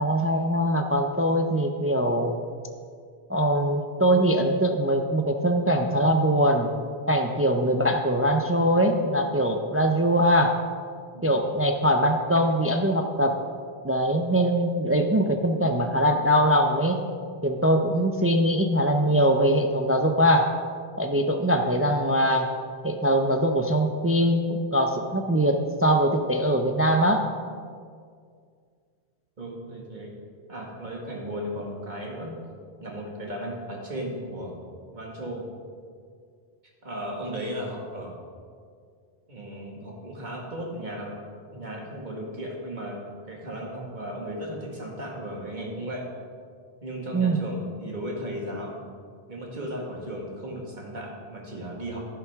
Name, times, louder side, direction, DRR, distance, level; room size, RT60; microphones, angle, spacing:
voice 1, 0.0-2.3 3.3-6.7 7.1-10.5 11.2-13.4 13.8-17.0 17.4-20.5 21.0-22.5 22.8-27.3 47.1-47.4, equal, 20° right, 4 dB, 0.3 m, -22 dB
voice 2, 29.4-30.1 30.5-32.3 32.8-34.5 34.9-35.4 36.8-38.2 39.3-41.2 41.5-46.1 46.8-48.7 49.3-52.0, equal, 45° right, -2 dB, 1.9 m, -35 dB
11.0 x 11.0 x 3.6 m, 2.1 s
omnidirectional pair, 1.1 m